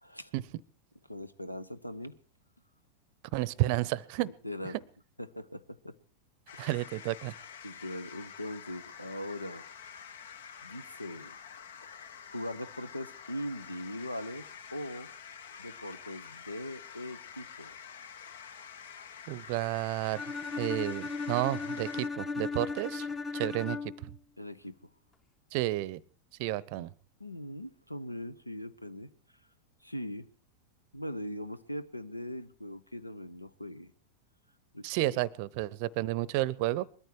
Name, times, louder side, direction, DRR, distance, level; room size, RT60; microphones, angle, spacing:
voice 1, 0.0-0.3 1.1-2.2 4.2-4.8 5.2-6.0 6.5-6.7 7.6-9.6 10.6-11.4 12.0-15.1 15.6-17.7 24.4-24.8 26.7-26.9 27.2-29.1 29.8-30.3 30.9-33.9 34.7-35.1, left 1 dB, 85° left, 0.8 m, -41 dB
voice 2, 3.3-4.3 6.6-7.3 19.3-23.1 23.3-24.1 25.5-26.0 26.4-26.9 34.8-36.9, right 17 dB, 45° right, 0.7 m, -31 dB
sound 1, 6.5-22.1, left 7 dB, 60° left, 0.9 m, -48 dB
Bowed string instrument, 20.1-24.1, left 4 dB, 20° left, 0.9 m, -36 dB
21.0 x 13.5 x 4.7 m
figure-of-eight pair, 90°, 0 cm